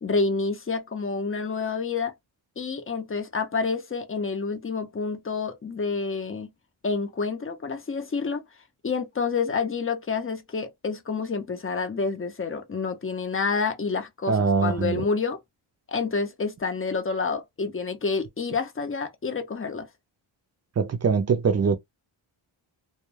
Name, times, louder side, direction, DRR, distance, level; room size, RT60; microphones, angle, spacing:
voice 1, 0.0-2.1 2.6-6.5 6.8-8.4 8.8-15.4 15.9-19.9, left 4 dB, 25° left, 0.6 m, -28 dB
voice 2, 14.3-15.0 20.8-21.8, right 5 dB, 35° right, 0.5 m, -22 dB
2.3 x 2.2 x 3.1 m
wide cardioid pair, 85°, 49 cm